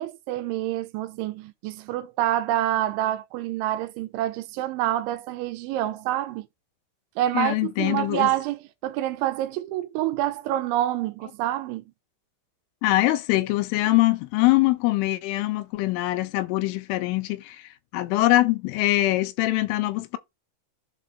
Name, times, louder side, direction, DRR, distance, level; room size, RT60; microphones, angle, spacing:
voice 1, 0.0-6.5 7.2-11.8, right 13 dB, 85° right, 3.0 m, -27 dB
voice 2, 7.3-8.3 12.8-20.2, left 17 dB, 85° left, 3.3 m, -23 dB
11.5 x 4.2 x 2.7 m
omnidirectional pair, 5.6 m